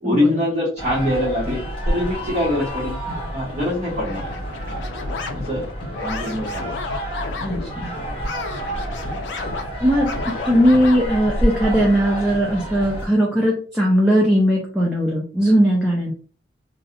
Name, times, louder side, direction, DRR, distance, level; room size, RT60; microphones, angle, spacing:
voice 1, 0.0-3.0 3.3-4.2 5.3-5.7 6.0-6.7 7.9-8.2, left 1 dB, 35° right, -7 dB, 0.7 m, -23 dB
sound 1, 0.8-13.1, equal, 25° left, 0.8 m, -29 dB
sound 2, 4.0-7.7 8.2-11.0, left 4 dB, 70° left, 0.4 m, -32 dB
voice 2, 7.4-7.9 9.8-16.1, equal, 5° right, -4 dB, 0.4 m, -19 dB
2.4 x 2.0 x 2.6 m, 0.40 s
head